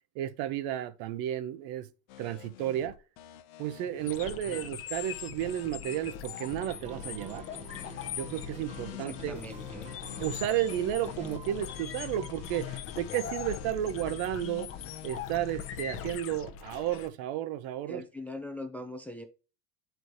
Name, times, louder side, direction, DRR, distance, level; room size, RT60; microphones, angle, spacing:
voice 1, 0.1-1.9 2.2-2.9 3.6-7.4 8.2-9.4 10.2-14.7 15.0-18.0, right 12 dB, 65° right, 0.8 m, -32 dB
sound 1, 2.1-16.2, left 10 dB, 65° left, 0.8 m, -46 dB
sound 2, 4.1-17.1, left 9 dB, 35° left, 0.7 m, -42 dB
voice 2, 4.2-4.6 8.9-9.9 17.9-19.3, left 1 dB, 5° left, 0.3 m, -42 dB
sound 3, 6.6-12.6, right 4 dB, 15° right, 0.8 m, -49 dB
9.5 x 4.6 x 2.6 m
cardioid pair, 140°, 39 cm